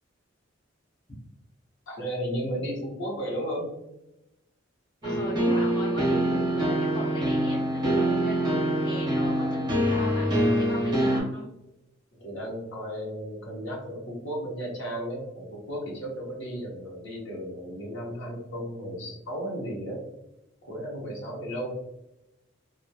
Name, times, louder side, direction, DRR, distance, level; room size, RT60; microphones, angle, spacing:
voice 1, 1.9-3.7 12.1-20.1 20.6-21.7, equal, 75° left, -2 dB, 1.0 m, -34 dB
voice 2, 5.0-11.5, left 1 dB, 25° left, -5 dB, 0.7 m, -37 dB
sound 1, 5.0-11.2, right 1 dB, 20° right, 0.6 m, -25 dB
2.8 x 2.3 x 2.2 m, 0.89 s
head